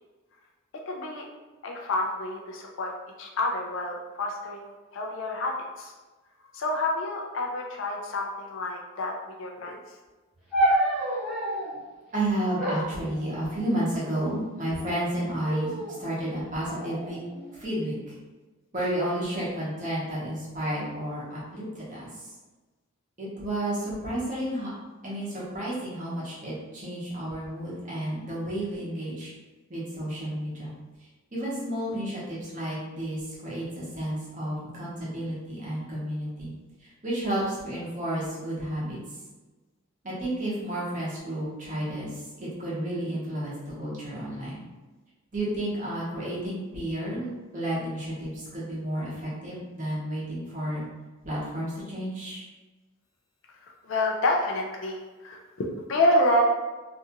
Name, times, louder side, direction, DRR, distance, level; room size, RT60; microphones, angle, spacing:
voice 1, 0.9-1.2 1.6-2.9 3.2-5.9 6.5-9.8 53.6-56.4, left 1 dB, 60° left, 1 dB, 0.4 m, -28 dB
sound 1, 10.5-11.8 12.6-13.8 14.6-15.0 15.4-16.0 16.7-17.7, right 1 dB, ahead, 0.8 m, -29 dB
voice 2, 12.1-17.2 17.5-18.1 18.7-22.3 23.2-24.7 25.0-29.3 29.7-30.7 31.3-36.5 36.8-39.0 40.0-44.6 45.3-50.8 51.2-52.4, right 1 dB, 35° right, -7 dB, 0.9 m, -31 dB
2.6 x 2.3 x 2.8 m, 1.2 s
head